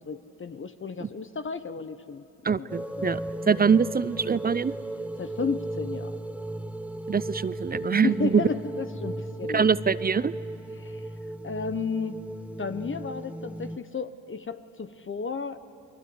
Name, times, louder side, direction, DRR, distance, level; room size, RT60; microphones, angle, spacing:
voice 1, 0.0-3.0 3.4-3.5 5.2-6.2 7.9-9.7 10.8-11.1 11.4-12.2 12.6-15.6, left 5 dB, 30° left, 10 dB, 1.1 m, -33 dB
voice 2, 2.4-3.2 3.5-4.7 7.1-8.4 9.5-10.3, right 6 dB, 25° right, 18 dB, 0.5 m, -24 dB
sound 1, 2.7-13.8, right 1 dB, 5° right, 1.0 m, -36 dB
30.0 x 22.0 x 8.1 m, 2.6 s
supercardioid pair, 60°, 39 cm